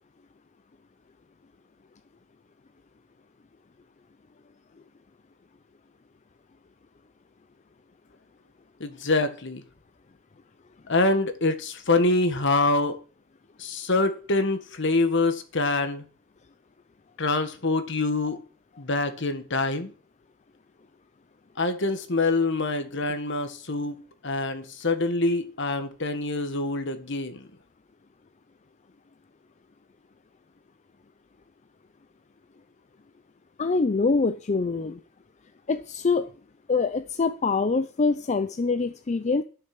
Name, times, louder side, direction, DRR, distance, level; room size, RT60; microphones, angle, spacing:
voice 1, 8.8-9.6 10.9-13.0 13.6-16.0 17.2-18.4 18.8-19.9 21.6-23.9 24.2-27.5, left 2 dB, 60° left, 1.6 m, -25 dB
voice 2, 33.6-35.0 35.7-36.3 36.7-39.4, left 4 dB, 35° left, 0.5 m, -24 dB
12.5 x 6.7 x 6.0 m
head